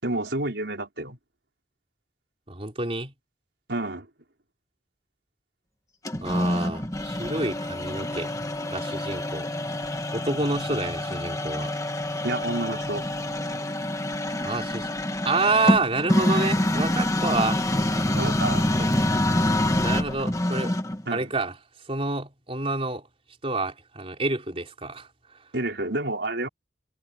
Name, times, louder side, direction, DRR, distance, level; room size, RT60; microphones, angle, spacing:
voice 1, 0.0-1.2 3.7-4.1 10.7-10.8 12.2-13.1 18.1-18.7 21.1-21.3 25.5-26.5, right 2 dB, 70° right, 4.6 m, -29 dB
voice 2, 2.5-3.1 6.2-8.3 8.7-9.5 10.1-11.7 14.4-14.9 15.2-17.6 18.8-18.9 19.8-20.7 21.1-21.5 21.9-23.0 23.4-25.1, right 3 dB, 30° right, 4.0 m, -28 dB
sound 1, 6.0-21.0, left 1 dB, 20° left, 1.4 m, -26 dB
head